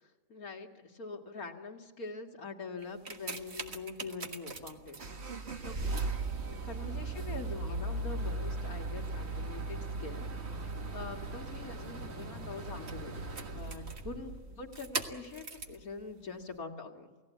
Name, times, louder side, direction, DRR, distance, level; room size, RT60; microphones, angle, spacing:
voice 1, 0.3-5.0 5.6-5.8 6.4-10.3 10.9-17.1, left 4 dB, 75° left, 3 dB, 2.6 m, -44 dB
sound 1, 2.8-15.8 16.5-16.6, right 3 dB, 45° right, 1.8 m, -38 dB
29.5 x 17.5 x 8.4 m, 1.3 s
omnidirectional pair, 1.5 m